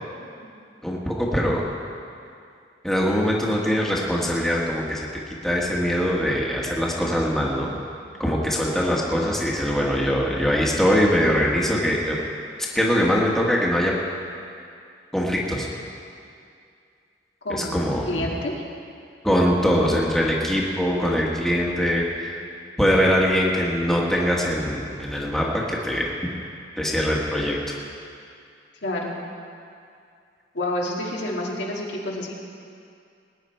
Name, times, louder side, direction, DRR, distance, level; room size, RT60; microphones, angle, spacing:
voice 1, 0.2-0.6 8.1-8.4 17.4-17.7 18.0-18.5 22.5-22.6 28.8-29.2 30.5-32.4, left 1 dB, 80° left, -3 dB, 2.3 m, -29 dB
voice 2, 0.8-1.6 2.8-5.1 5.4-7.7 8.2-12.2 12.7-13.9 15.1-15.7 17.5-18.3 19.2-22.3 22.8-26.2 26.8-27.8, equal, ahead, -4 dB, 1.6 m, -22 dB
20.0 x 10.0 x 4.5 m, 2.4 s
head